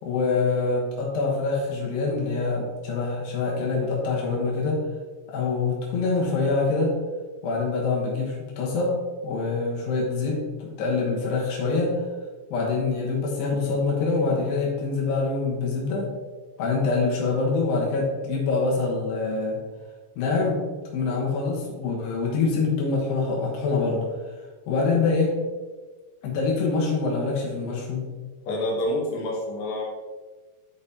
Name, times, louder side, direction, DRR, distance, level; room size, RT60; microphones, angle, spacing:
voice 1, 0.0-4.8 5.3-7.0 7.4-8.9 9.2-12.0 12.5-16.1 16.6-19.6 20.2-20.6 20.9-24.1 24.7-25.4 26.2-28.1, left 4 dB, 85° left, -3 dB, 3.3 m, -25 dB
voice 2, 28.5-29.9, left 1 dB, 70° left, -3 dB, 3.3 m, -27 dB
10.5 x 5.2 x 2.8 m, 1.3 s
omnidirectional pair, 4.6 m